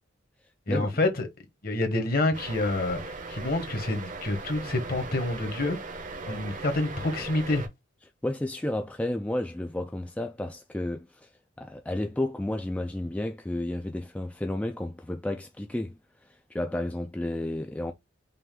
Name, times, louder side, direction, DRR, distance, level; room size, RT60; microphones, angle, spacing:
voice 1, 0.7-1.3 1.6-5.8 6.3-7.6, left 2 dB, 50° left, 1.2 m, -28 dB
sound 1, 2.3-7.7, right 3 dB, 40° right, 0.8 m, -39 dB
voice 2, 8.2-11.3 11.6-17.9, left 1 dB, 5° left, 0.3 m, -32 dB
5.5 x 2.4 x 3.6 m
head